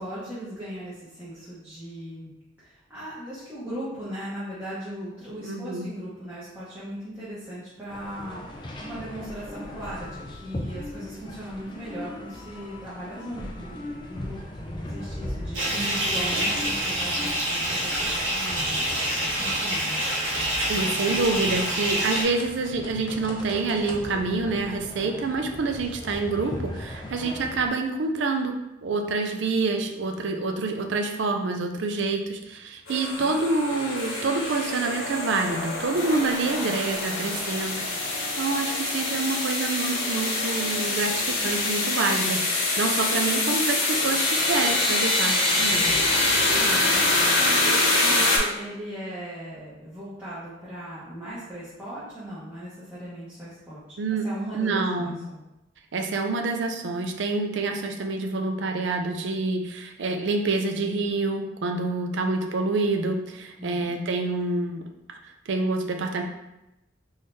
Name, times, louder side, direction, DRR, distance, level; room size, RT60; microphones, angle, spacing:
voice 1, 0.0-2.3 2.6-14.4 14.7-18.9 19.2-20.1 33.2-33.4 46.5-55.4 61.8-62.2 63.6-63.9, equal, 10° right, -12 dB, 0.9 m, -38 dB
voice 2, 5.4-5.9 20.7-45.9 54.0-54.3 54.5-55.2 55.9-64.8 65.5-66.2, right 3 dB, 60° right, 4 dB, 0.4 m, -27 dB
sound 1, 7.9-27.7, left 1 dB, 25° left, 0.4 m, -38 dB
Bathtub (filling or washing) / Fill (with liquid), 15.5-22.2, right 1 dB, 90° right, 1.3 m, -27 dB
sound 2, 32.9-48.4, left 2 dB, 80° left, 1.0 m, -25 dB
3.7 x 3.2 x 2.7 m, 0.92 s
head